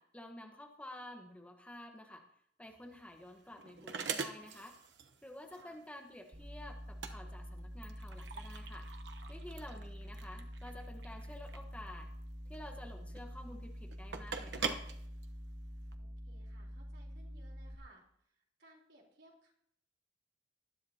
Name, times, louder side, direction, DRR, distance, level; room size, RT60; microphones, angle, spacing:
voice 1, 0.0-2.3 2.6-4.8 5.2-8.9 9.3-12.1 12.5-14.9, left 1 dB, 10° left, 3 dB, 1.2 m, -50 dB
sound 1, 2.6-15.9, right 5 dB, 90° right, 1.0 m, -44 dB
sound 2, 6.3-17.8, equal, 35° right, 1.8 m, -47 dB
voice 2, 16.0-19.5, right 1 dB, 75° right, -1 dB, 3.8 m, -63 dB
19.5 x 12.5 x 2.8 m, 0.69 s
head